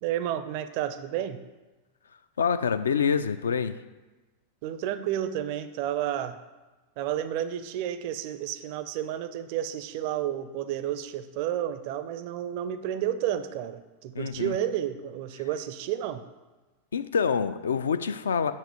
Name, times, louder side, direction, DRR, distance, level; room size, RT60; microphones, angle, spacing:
voice 1, 0.0-1.4 4.6-6.4 7.0-16.2, right 11 dB, 45° right, 11 dB, 0.4 m, -31 dB
voice 2, 2.4-3.8 14.1-14.5 16.9-18.5, left 6 dB, 70° left, 11 dB, 0.3 m, -26 dB
7.3 x 2.9 x 5.5 m, 1.2 s
figure-of-eight pair, 90°, 0 cm